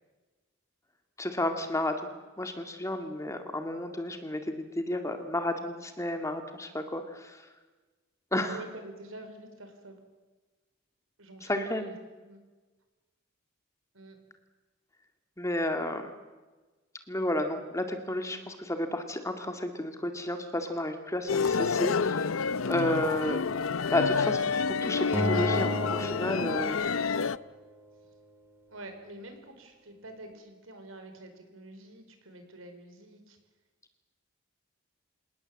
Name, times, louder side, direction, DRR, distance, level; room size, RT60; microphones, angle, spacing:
voice 1, 1.2-1.9 2.4-7.4 8.3-8.6 11.4-11.8 15.4-16.1 17.1-23.4 23.9-26.8, left 1 dB, 15° left, 6 dB, 2.1 m, -32 dB
voice 2, 8.4-9.9 11.2-11.9 12.2-12.4 13.9-14.2 28.7-33.4, right 2 dB, 80° right, 6 dB, 4.9 m, -47 dB
sound 1, 21.3-27.4, left 5 dB, 75° left, 0.7 m, -28 dB
Acoustic guitar, 25.1-27.5, equal, 10° right, 2.2 m, -33 dB
27.5 x 19.0 x 7.7 m, 1.3 s
head